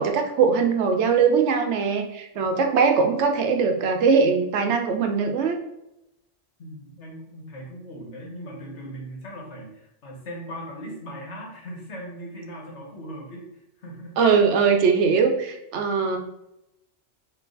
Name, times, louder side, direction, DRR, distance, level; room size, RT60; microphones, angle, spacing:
voice 1, 0.0-5.6 14.2-16.2, right 5 dB, 80° right, 5 dB, 0.9 m, -21 dB
voice 2, 6.6-14.1, equal, 80° left, -2 dB, 1.5 m, -39 dB
4.5 x 2.8 x 3.9 m, 0.87 s
omnidirectional pair, 1.2 m